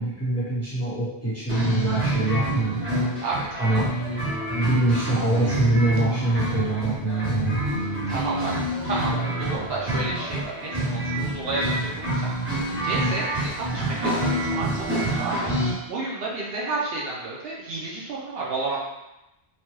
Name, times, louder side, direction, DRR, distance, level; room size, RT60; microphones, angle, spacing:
voice 1, 0.0-2.8 3.6-3.9 4.5-7.6, right 2 dB, 15° left, -10 dB, 1.0 m, -24 dB
sound 1, 1.5-15.7, right 1 dB, 15° right, 1.0 m, -27 dB
voice 2, 3.2-3.9 8.1-8.5 8.8-14.7 15.0-15.5 15.9-18.8, right 3 dB, 70° right, -4 dB, 0.8 m, -31 dB
3.1 x 2.2 x 3.0 m, 0.92 s
omnidirectional pair, 1.1 m